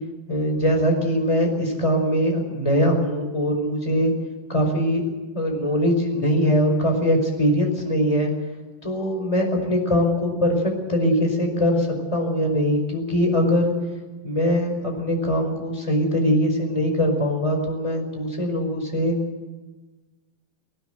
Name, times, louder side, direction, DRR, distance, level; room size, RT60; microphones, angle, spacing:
voice 1, 0.3-4.1 4.5-5.0 5.3-8.3 8.8-11.9 12.1-13.7 14.2-19.2, equal, 10° left, 3 dB, 5.1 m, -22 dB
20.0 x 19.5 x 7.9 m, 1.2 s
omnidirectional pair, 4.1 m